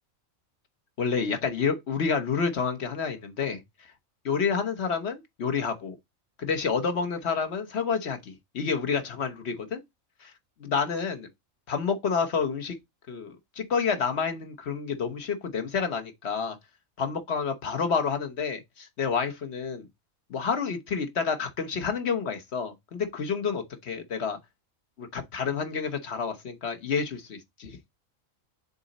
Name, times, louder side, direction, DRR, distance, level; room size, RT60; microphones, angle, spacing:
voice 1, 1.0-3.6 4.2-6.0 6.4-9.8 10.2-10.3 10.6-11.3 11.7-12.8 13.1-16.6 17.0-19.9 20.3-24.4 25.0-27.8, left 5 dB, 55° left, 1.2 m, -29 dB
6.9 x 3.9 x 4.1 m
omnidirectional pair, 1.4 m